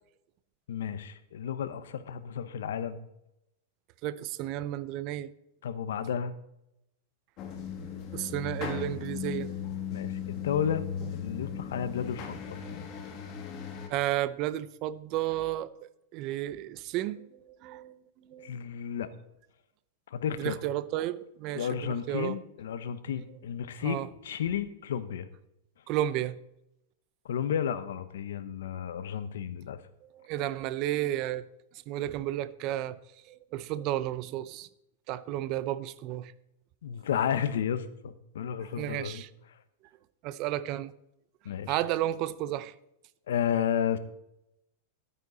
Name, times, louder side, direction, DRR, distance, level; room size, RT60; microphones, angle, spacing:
voice 1, 0.7-3.0 5.6-6.3 9.9-10.8 11.1-12.6 18.4-19.1 20.1-20.5 21.5-25.3 27.2-29.8 36.8-39.2 41.4-41.8 43.3-44.0, left 8 dB, 85° left, 0.9 m, -32 dB
voice 2, 4.0-5.3 8.1-9.5 13.9-15.7 16.1-18.5 20.4-22.4 23.8-24.1 25.9-26.4 30.1-31.4 31.9-33.0 33.3-34.7 35.1-36.3 38.8-39.3 40.2-40.9 41.7-42.7, right 13 dB, 35° right, 0.5 m, -32 dB
sound 1, 7.4-13.9, left 8 dB, 30° left, 1.5 m, -37 dB
12.5 x 9.2 x 4.0 m
supercardioid pair, 160°, 0 cm